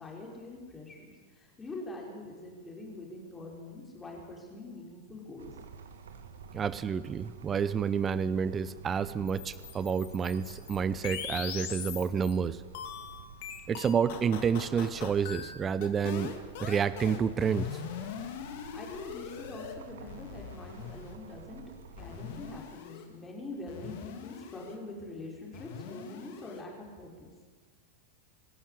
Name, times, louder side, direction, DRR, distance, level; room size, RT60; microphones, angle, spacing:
voice 1, 0.0-5.5 18.7-21.6 22.0-27.3, left 2 dB, 15° left, -1 dB, 5.8 m, -44 dB
sound 1, 5.4-22.6, right 6 dB, 65° right, 1.5 m, -50 dB
voice 2, 6.5-12.6 13.7-17.8, right 7 dB, 20° right, 16 dB, 0.8 m, -29 dB
sound 2, 9.3-12.4 12.7-19.7 20.1-21.2 22.0-23.1 23.7-24.8 25.5-26.6, left 9 dB, 50° left, 2.6 m, -41 dB
26.0 x 13.0 x 8.5 m, 1.5 s
figure-of-eight pair, 90°, 0 cm